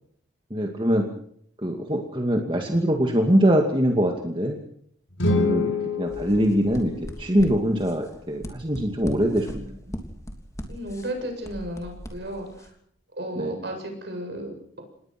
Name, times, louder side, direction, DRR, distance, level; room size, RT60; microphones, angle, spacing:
voice 1, 0.5-1.1 1.6-4.6 5.4-6.9 7.2-9.7 13.4-13.6, equal, 25° right, 2 dB, 2.3 m, -23 dB
sound 1, 5.1-7.3, left 3 dB, 75° left, 6.4 m, -26 dB
sound 2, 6.1-12.7, equal, 15° left, 3.2 m, -39 dB
voice 2, 10.7-12.7 13.1-14.5, right 1 dB, 55° right, 4 dB, 7.8 m, -33 dB
28.5 x 20.5 x 6.1 m, 0.67 s
head